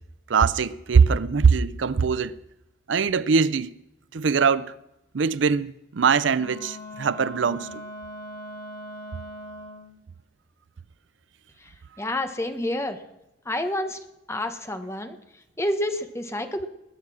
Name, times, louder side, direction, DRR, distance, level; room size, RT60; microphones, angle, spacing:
voice 1, 0.3-2.4 2.9-3.7 4.1-4.7 5.1-7.8, right 5 dB, 85° right, 0.5 m, -21 dB
Wind instrument woodwind instrument, 6.3-10.0, left 1 dB, 40° left, 6.6 m, -40 dB
voice 2, 12.0-13.0 13.4-14.0 14.3-15.2 15.6-16.6, left 1 dB, 15° left, 1.2 m, -28 dB
20.5 x 9.2 x 6.1 m
head